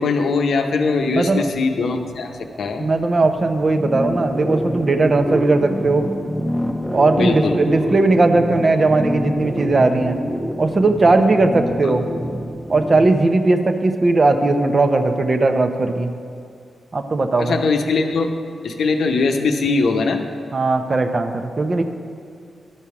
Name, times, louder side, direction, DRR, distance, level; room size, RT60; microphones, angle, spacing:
voice 1, 0.0-2.9 7.1-7.6 11.8-11.9 17.4-18.3 18.6-20.2, left 4 dB, 80° left, 4 dB, 0.7 m, -21 dB
sound 1, 1.0-13.2, equal, 5° left, 0.7 m, -27 dB
voice 2, 1.1-1.4 2.8-6.1 6.9-10.2 10.6-12.1 12.7-16.1 16.9-17.5 20.5-21.8, right 3 dB, 50° right, 6 dB, 0.8 m, -18 dB
12.0 x 5.5 x 4.8 m, 2.3 s
supercardioid pair, 45°, 0 cm